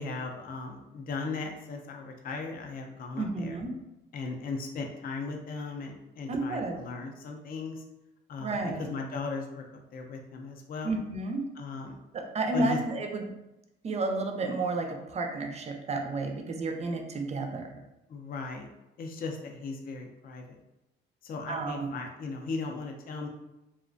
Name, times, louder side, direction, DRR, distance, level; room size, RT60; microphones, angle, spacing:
voice 1, 0.0-3.6 4.1-7.8 8.3-9.6 9.9-10.9 11.6-12.0 12.5-12.8 18.1-18.7 19.0-20.6 21.2-23.3, left 4 dB, 45° left, 2 dB, 0.4 m, -37 dB
voice 2, 3.2-3.7 6.3-6.8 8.4-8.8 10.8-11.4 12.1-13.2 13.8-17.8 21.5-21.9, right 3 dB, 35° right, 4 dB, 0.4 m, -31 dB
2.3 x 2.1 x 2.5 m, 0.94 s
cardioid pair, 90°, 20 cm